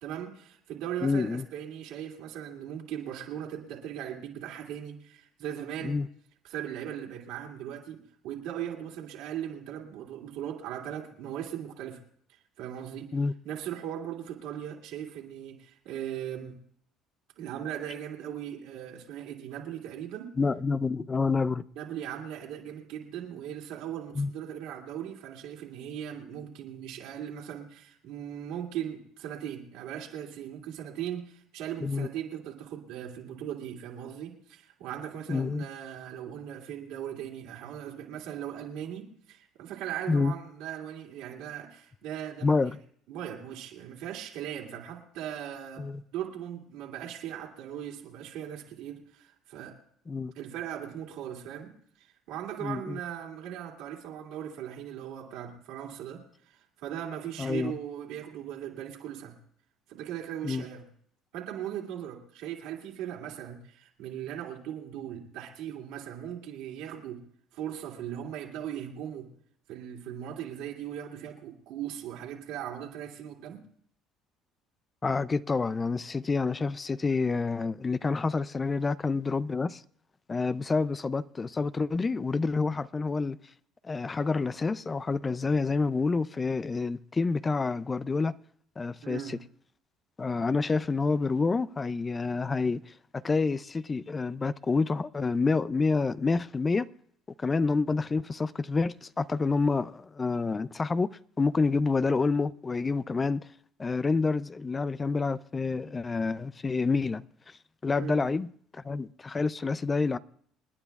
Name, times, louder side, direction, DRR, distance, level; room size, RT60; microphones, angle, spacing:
voice 1, 0.0-6.0 6.4-12.0 12.3-13.1 13.4-16.6 17.4-20.3 21.8-42.6 43.1-49.7 50.3-51.7 52.0-59.4 59.9-60.9 61.3-67.2 67.5-69.3 69.7-73.6 89.0-89.4 108.0-108.3, right 10 dB, 80° right, 2.6 m, -39 dB
voice 2, 1.0-1.5 5.8-6.1 13.1-13.3 20.4-21.6 24.2-24.3 31.8-32.1 35.3-35.7 40.1-40.3 42.4-42.8 45.8-46.0 50.1-50.3 52.6-53.0 57.4-57.7 60.4-60.6 75.0-79.8 80.3-83.4 83.8-88.3 88.8-89.4 90.2-96.9 97.4-103.5 103.8-108.5 108.7-110.2, left 4 dB, 25° left, 0.4 m, -28 dB
28.5 x 9.9 x 2.4 m
supercardioid pair, 80°, 0 cm